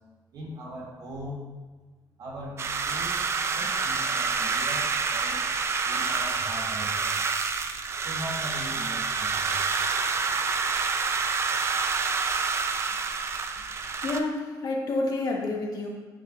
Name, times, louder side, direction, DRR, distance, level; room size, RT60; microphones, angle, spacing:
voice 1, 0.3-1.5 2.2-5.4 5.8-7.2 8.0-9.6, equal, 60° right, -4 dB, 2.3 m, -40 dB
sound 1, 2.6-14.2, right 5 dB, 35° right, 0.5 m, -28 dB
voice 2, 14.0-16.0, left 2 dB, 55° left, 0 dB, 1.2 m, -29 dB
9.2 x 6.3 x 2.4 m, 1.3 s
cardioid pair, 125°, 8 cm